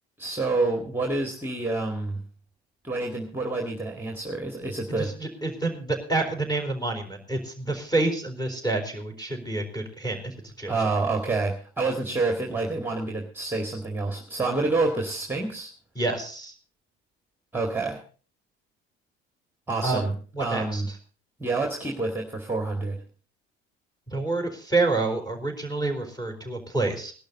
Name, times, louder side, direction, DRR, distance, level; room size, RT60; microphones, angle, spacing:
voice 1, 0.2-2.2 2.8-5.1 10.7-15.7 17.5-18.0 19.7-20.1 20.4-20.9 21.4-23.0, right 3 dB, 5° right, 4 dB, 2.1 m, -28 dB
voice 2, 5.0-10.7 15.9-16.5 19.8-20.1 20.3-20.8 24.1-27.1, right 2 dB, 10° left, 5 dB, 4.4 m, -28 dB
18.0 x 11.5 x 4.1 m, 0.39 s
figure-of-eight pair, 60°, 32 cm